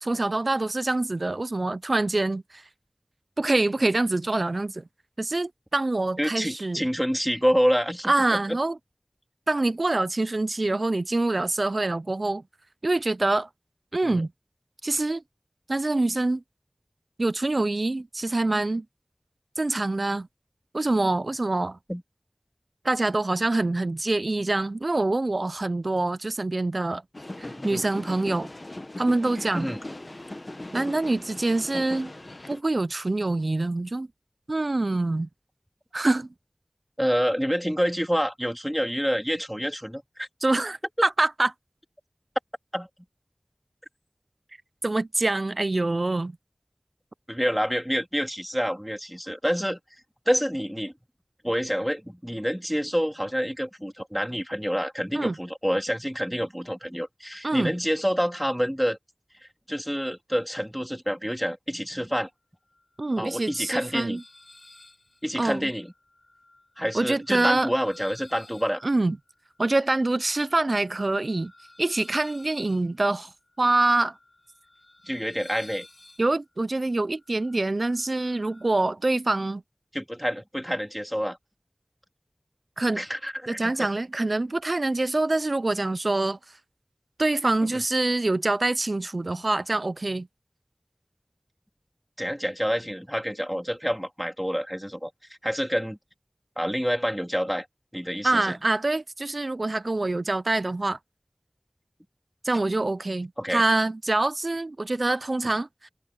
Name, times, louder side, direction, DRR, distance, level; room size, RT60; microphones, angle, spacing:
voice 1, 0.0-2.6 3.4-4.8 5.2-6.8 8.1-8.8 9.5-12.4 12.8-13.5 13.9-14.3 14.8-15.2 15.7-16.4 17.2-18.9 19.6-20.3 20.7-21.8 22.8-27.0 27.4-28.5 29.0-29.7 30.7-32.1 32.5-34.1 34.5-35.3 35.9-36.3 40.4-41.5 44.8-46.4 55.2-55.3 57.4-57.7 63.0-64.2 65.4-65.7 66.9-67.7 68.8-69.2 69.6-71.5 71.8-73.3 73.6-74.2 76.2-79.6 82.8-83.0 83.5-86.4 87.2-90.3 98.2-101.0 102.4-105.9, right 2 dB, 85° right, 0.4 m, -25 dB
voice 2, 6.2-8.6 14.0-14.2 21.9-22.0 27.5-27.9 29.5-29.8 37.0-40.3 42.7-42.9 47.3-49.8 50.2-50.9 51.4-59.0 59.4-62.3 63.2-64.2 65.2-65.9 66.8-68.8 75.0-75.9 79.9-81.4 82.9-83.9 87.6-87.8 92.2-95.1 95.4-96.0 96.6-97.7 97.9-98.6 103.4-103.6, equal, ahead, 3.3 m, -27 dB
sound 1, 27.1-32.6, left 1 dB, 55° left, 0.9 m, -39 dB
sound 2, 62.7-78.8, left 2 dB, 75° left, 6.5 m, -54 dB
wide cardioid pair, 40°, 0 cm